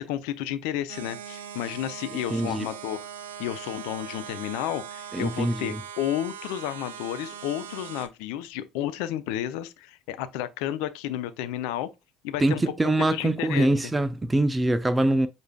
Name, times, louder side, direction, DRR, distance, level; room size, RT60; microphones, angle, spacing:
voice 1, 0.0-3.0 3.4-11.9 12.2-13.7, left 12 dB, 70° left, 0.5 m, -32 dB
sound 1, 0.9-8.1, right 8 dB, 80° right, 0.4 m, -40 dB
voice 2, 2.3-2.7 5.1-5.8 12.4-15.3, right 1 dB, 15° right, 0.5 m, -24 dB
6.7 x 2.6 x 2.2 m
hypercardioid pair, 60°, 0 cm